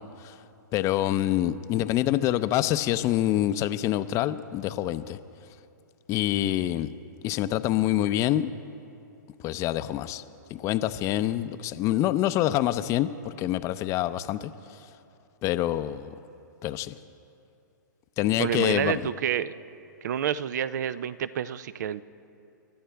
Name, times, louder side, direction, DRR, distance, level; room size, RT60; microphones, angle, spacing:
voice 1, 0.7-5.2 6.1-6.9 7.2-8.5 9.4-10.2 10.5-14.5 15.4-16.1 16.6-17.0 18.2-19.0, left 13 dB, 30° left, 12 dB, 0.6 m, -26 dB
voice 2, 18.4-19.5 20.0-22.0, right 10 dB, 60° right, 16 dB, 0.6 m, -28 dB
29.0 x 13.0 x 3.5 m, 2.6 s
hypercardioid pair, 125°, 10 cm